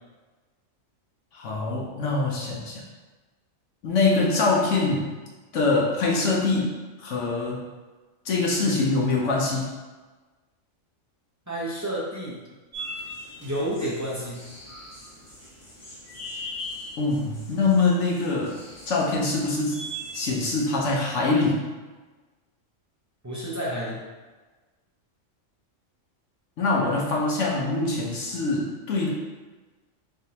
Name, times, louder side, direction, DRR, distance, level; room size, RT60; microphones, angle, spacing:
voice 1, 1.3-2.8 3.8-5.1 5.5-7.6 8.2-9.7 17.0-18.6 18.9-19.8 20.1-21.6 26.6-29.1, left 3 dB, 75° left, -3 dB, 1.0 m, -24 dB
voice 2, 11.5-12.4 13.4-14.4 23.2-24.0, right 1 dB, 20° right, -6 dB, 0.4 m, -30 dB
sound 1, 12.7-20.3, equal, 15° left, 0.7 m, -40 dB
3.8 x 3.5 x 2.8 m, 1.3 s
omnidirectional pair, 1.3 m